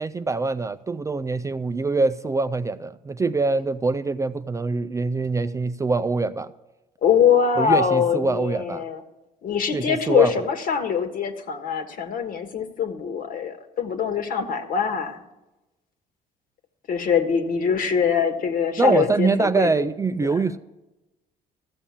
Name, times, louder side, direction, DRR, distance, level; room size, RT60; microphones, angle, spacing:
voice 1, 0.0-6.5 7.6-8.8 9.7-10.3 18.8-20.6, right 3 dB, 20° right, 11 dB, 0.4 m, -24 dB
voice 2, 7.0-9.0 9.4-15.2 16.9-19.9 20.2-20.3, left 7 dB, 55° left, 7 dB, 1.5 m, -23 dB
14.0 x 7.1 x 7.3 m, 1.0 s
cardioid pair, 110°, 17 cm